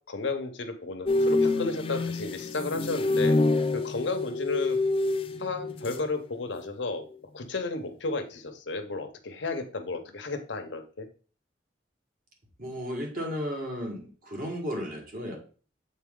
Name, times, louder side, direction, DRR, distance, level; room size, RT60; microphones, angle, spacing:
voice 1, 0.0-4.8 5.4-7.1 7.3-11.1, left 3 dB, 80° left, 6 dB, 0.9 m, -33 dB
sound 1, 1.1-6.2 6.4-6.8, left 2 dB, 30° left, 0.4 m, -27 dB
voice 2, 12.6-15.4, equal, 50° right, 0 dB, 1.6 m, -34 dB
7.3 x 4.1 x 3.7 m, 0.39 s
head